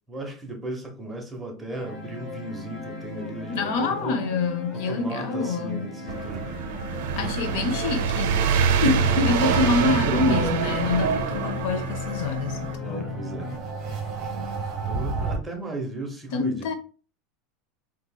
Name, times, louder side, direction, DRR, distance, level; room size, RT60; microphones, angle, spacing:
voice 1, 0.1-4.2 4.7-6.6 8.7-9.0 9.4-11.3 12.8-13.5 14.2-14.3 14.9-16.7, right 2 dB, 10° right, 0.7 m, -35 dB
sound 1, 1.7-13.6, left 4 dB, 20° left, 0.9 m, -37 dB
voice 2, 3.5-5.9 7.2-8.4 8.8-13.2 16.3-16.7, left 3 dB, 60° left, 0.5 m, -26 dB
sound 2, 6.1-12.7, right 6 dB, 80° right, 0.5 m, -25 dB
sound 3, 10.1-15.4, right 4 dB, 30° right, 1.0 m, -34 dB
3.6 x 2.7 x 2.2 m
supercardioid pair, 160°, 0 cm